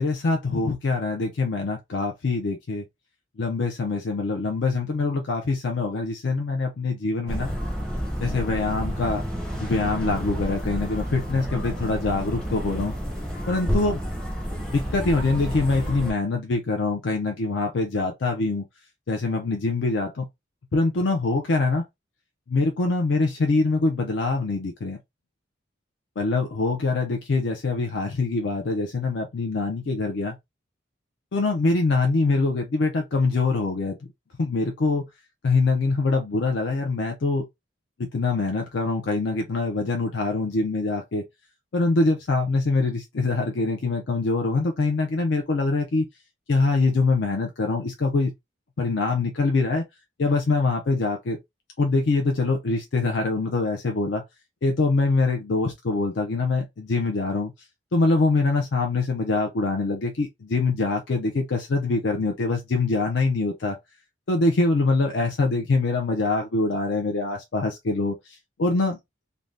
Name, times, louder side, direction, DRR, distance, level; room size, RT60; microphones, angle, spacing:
voice 1, 0.0-2.8 3.4-7.5 8.2-9.2 9.6-12.9 13.5-14.0 14.7-18.6 19.1-20.3 20.7-21.8 22.5-25.0 26.2-30.4 31.3-34.0 34.4-35.0 35.4-37.5 38.1-41.2 41.7-46.1 46.5-48.3 48.8-49.8 50.2-51.4 51.8-54.2 54.6-57.5 57.9-63.8 64.3-69.0, left 3 dB, 65° left, 0.5 m, -24 dB
sound 1, 7.3-16.1, equal, 5° left, 0.6 m, -30 dB
2.6 x 2.2 x 3.2 m
head